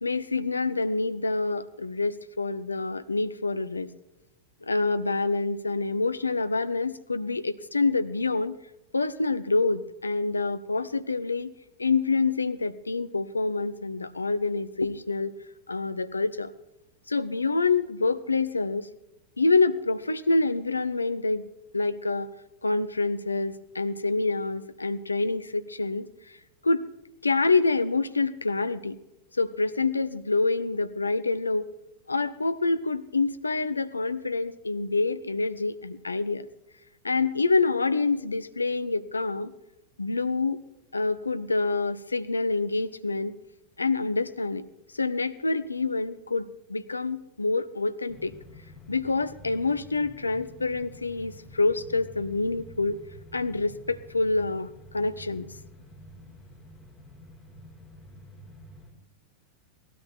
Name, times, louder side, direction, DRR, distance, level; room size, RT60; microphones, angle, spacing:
voice 1, 0.0-3.9 4.6-8.6 8.9-11.5 11.8-15.3 15.7-16.5 17.1-18.9 19.4-21.5 21.7-22.3 22.6-26.1 26.6-26.8 27.2-29.0 29.3-31.6 32.1-36.5 37.0-39.5 40.0-40.6 40.9-43.3 43.8-44.6 44.9-48.3 48.9-53.0 53.3-55.5, left 3 dB, 80° left, 13 dB, 0.7 m, -27 dB
sound 1, 48.1-58.9, equal, 15° left, 4.8 m, -49 dB
18.0 x 13.0 x 4.4 m, 0.90 s
figure-of-eight pair, 90°, 0 cm